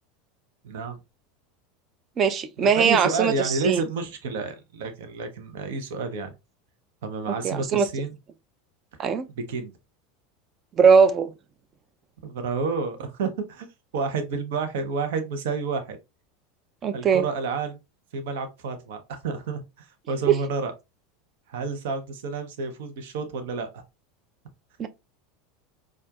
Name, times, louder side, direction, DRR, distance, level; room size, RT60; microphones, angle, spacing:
voice 1, 0.6-1.0 2.6-6.3 7.0-8.2 9.4-9.7 12.2-13.7 13.9-16.0 16.9-17.8 18.1-20.7 21.5-23.8, right 4 dB, 70° right, 0.8 m, -30 dB
voice 2, 2.2-3.8 7.4-7.9 9.0-9.2 10.8-11.3 16.8-17.2 20.3-20.4 24.8-24.9, right 6 dB, 35° right, 0.5 m, -20 dB
4.4 x 2.4 x 2.3 m
hypercardioid pair, 85°, 0 cm